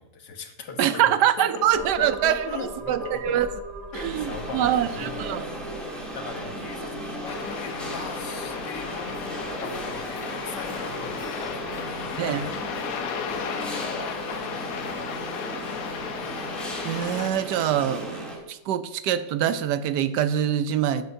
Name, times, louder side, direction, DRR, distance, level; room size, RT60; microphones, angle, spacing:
voice 1, 0.0-1.0 1.4-3.4 3.9-5.2 5.8-16.2, left 4 dB, 80° left, 5 dB, 1.7 m, -40 dB
voice 2, 0.8-2.6 2.9-3.5 3.9-5.4 12.2-12.4 16.8-21.0, right 10 dB, 80° right, 12 dB, 1.2 m, -24 dB
sound 1, 1.7-18.4, right 3 dB, 40° right, 3.2 m, -43 dB
sound 2, 3.9-18.4, equal, ahead, 2.6 m, -36 dB
sound 3, 7.3-17.3, left 7 dB, 65° left, 1.0 m, -34 dB
11.5 x 8.8 x 2.7 m, 0.91 s
omnidirectional pair, 1.8 m